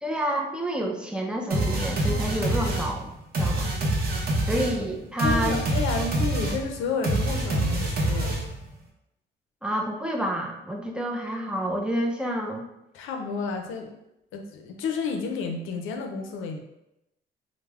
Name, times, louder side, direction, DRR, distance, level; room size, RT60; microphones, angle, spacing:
voice 1, 0.0-3.1 3.4-3.7 4.5-5.6 9.6-12.7, equal, 5° right, 1 dB, 0.3 m, -28 dB
sound 1, 1.5-8.7, right 1 dB, 50° right, 0.7 m, -26 dB
voice 2, 5.2-8.4 12.9-14.0 14.3-16.6, left 5 dB, 90° left, 3 dB, 0.4 m, -31 dB
2.3 x 2.0 x 3.3 m, 0.87 s
cardioid pair, 90°, 20 cm